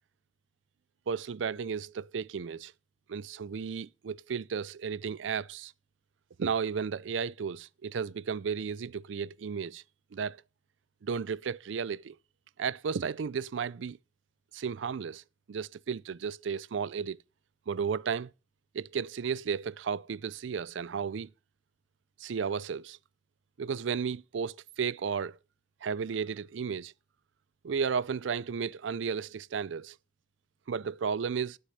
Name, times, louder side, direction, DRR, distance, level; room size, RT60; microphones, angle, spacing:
voice 1, 1.1-2.7 3.1-5.7 6.4-9.8 10.1-10.4 11.0-12.2 12.6-14.0 14.5-15.2 15.5-17.2 17.7-18.3 18.7-21.3 22.2-23.0 23.6-25.4 25.8-26.9 27.6-30.0 30.7-31.6, right 6 dB, 75° right, 0.4 m, -33 dB
11.5 x 6.6 x 5.7 m
head